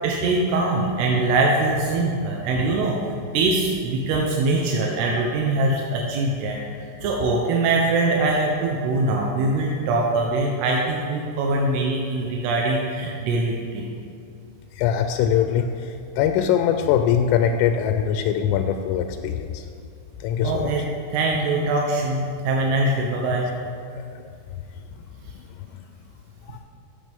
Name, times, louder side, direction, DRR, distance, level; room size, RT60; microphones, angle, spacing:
voice 1, 0.0-3.0 3.3-6.6 7.0-13.9 20.4-20.8 21.1-23.5, right 2 dB, 80° right, -1 dB, 2.4 m, -22 dB
voice 2, 14.7-19.6 20.2-20.7 26.5-26.6, left 8 dB, 90° left, 7 dB, 3.1 m, -22 dB
13.5 x 8.5 x 3.5 m, 2.4 s
omnidirectional pair, 5.7 m